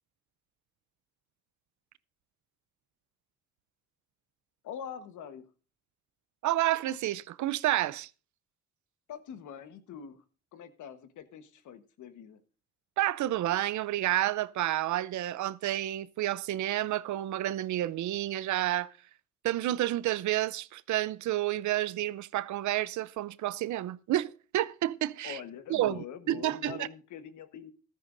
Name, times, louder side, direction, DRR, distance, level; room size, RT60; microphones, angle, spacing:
voice 1, 4.6-5.5 9.1-10.2 10.5-12.4 25.2-27.7, left 8 dB, 75° left, 1.3 m, -44 dB
voice 2, 6.4-8.1 13.0-18.9 19.4-25.4 25.7-26.9, right 14 dB, 70° right, 0.6 m, -30 dB
15.0 x 13.0 x 2.6 m
cardioid pair, 90°, 30 cm